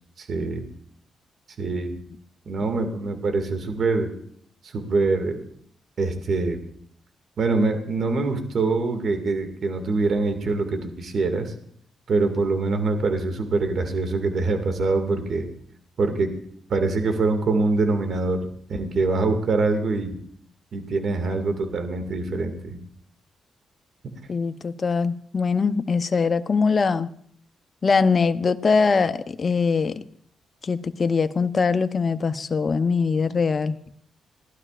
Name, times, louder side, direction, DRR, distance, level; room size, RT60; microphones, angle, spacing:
voice 1, 0.2-0.6 1.6-2.0 2.5-4.1 4.6-5.4 6.0-6.6 7.4-11.5 12.1-15.5 16.0-16.3 16.7-18.4 18.7-20.2 20.7-22.8, right 3 dB, 60° right, 6 dB, 2.0 m, -24 dB
voice 2, 24.3-27.1 27.8-29.9 30.6-33.8, left 5 dB, 45° left, 11 dB, 0.7 m, -22 dB
18.5 x 12.0 x 2.5 m, 0.63 s
cardioid pair, 70°, 0 cm